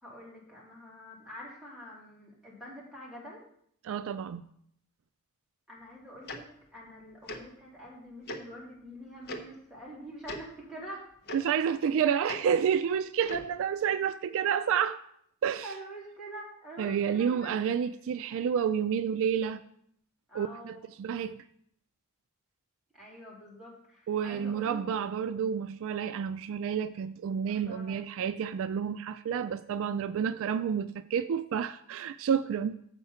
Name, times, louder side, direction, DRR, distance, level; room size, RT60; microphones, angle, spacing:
voice 1, 0.0-3.4 5.7-6.4 6.7-11.1 15.6-17.6 20.3-20.8 22.9-25.0 27.5-28.2, equal, ahead, 3.0 m, -46 dB
voice 2, 3.8-4.5 11.3-15.0 15.4-15.7 16.8-19.6 20.3-21.4 24.1-32.7, right 7 dB, 65° right, 0.3 m, -30 dB
Tick-tock, 6.3-6.4 7.3-7.4 8.3-8.4 9.3-9.4 10.2-10.4 11.3-11.4 12.3-12.4 13.2-13.5, left 1 dB, 50° left, 0.9 m, -38 dB
7.0 x 6.5 x 5.6 m
head